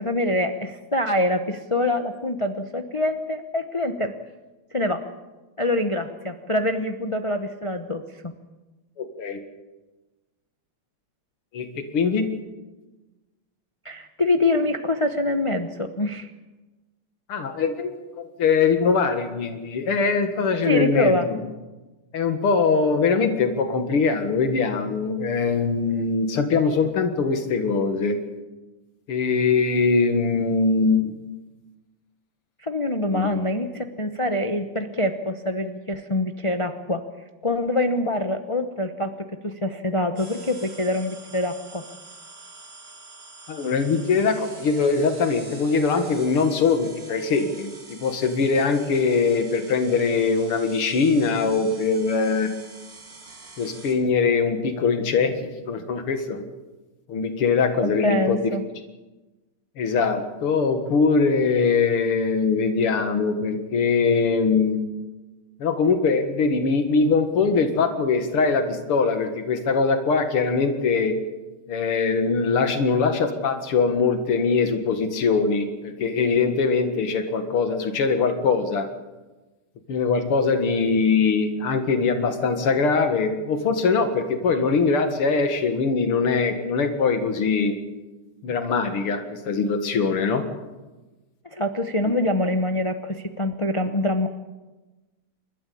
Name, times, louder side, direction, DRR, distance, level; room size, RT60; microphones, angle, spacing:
voice 1, 0.0-4.1 4.7-5.0 5.6-8.3 13.8-16.3 20.6-21.3 32.6-37.0 37.4-39.1 39.4-41.8 57.8-58.6 91.5-94.3, left 1 dB, 25° left, 6 dB, 0.7 m, -25 dB
voice 2, 9.0-9.4 11.5-12.3 17.3-21.4 22.1-28.2 29.1-31.1 33.1-33.4 43.5-52.5 53.6-56.4 57.1-58.5 59.8-64.8 65.6-71.2 71.7-78.9 79.9-87.7 88.4-90.4 92.0-92.1, left 4 dB, 85° left, 6 dB, 2.8 m, -22 dB
sound 1, 40.2-53.9, right 3 dB, 80° right, 4.7 m, -45 dB
29.0 x 13.5 x 8.6 m, 1.2 s
omnidirectional pair, 2.4 m